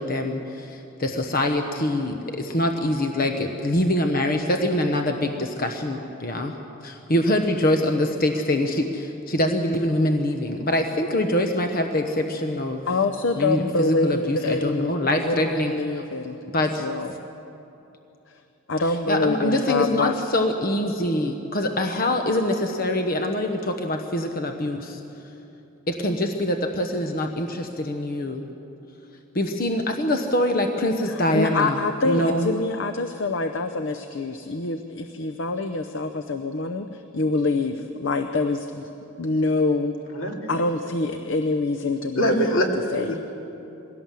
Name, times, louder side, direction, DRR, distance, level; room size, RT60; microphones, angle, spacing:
voice 1, 0.0-6.5 6.8-12.9 13.4-15.7 16.5-16.9 19.1-25.0 25.9-28.4 29.3-31.8 32.0-32.5, left 1 dB, 45° left, 5 dB, 1.0 m, -24 dB
voice 2, 12.9-16.4 16.8-17.1 18.3-18.4 18.7-20.1 31.0-38.9 39.2-39.9 40.5-42.6 42.9-43.1, left 3 dB, 60° left, 8 dB, 0.7 m, -25 dB
voice 3, 42.2-43.2, equal, 80° left, 2 dB, 2.5 m, -23 dB
21.5 x 17.0 x 7.5 m, 2.9 s
head